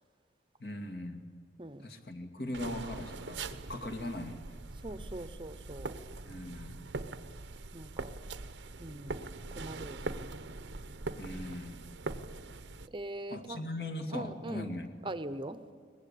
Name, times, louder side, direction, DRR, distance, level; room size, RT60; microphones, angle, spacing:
voice 1, 0.6-1.2 1.8-4.6 6.2-6.9 11.2-11.9 13.3-14.9, left 1 dB, 60° left, 5 dB, 2.3 m, -40 dB
sound 1, 2.5-12.9, right 3 dB, 85° right, 0.9 m, -42 dB
voice 2, 4.8-5.9 7.7-8.2 8.8-9.3 9.5-10.3 12.9-13.6 14.1-14.7 15.0-15.6, right 1 dB, 25° right, 12 dB, 0.8 m, -41 dB
23.5 x 20.0 x 8.4 m, 2.1 s
head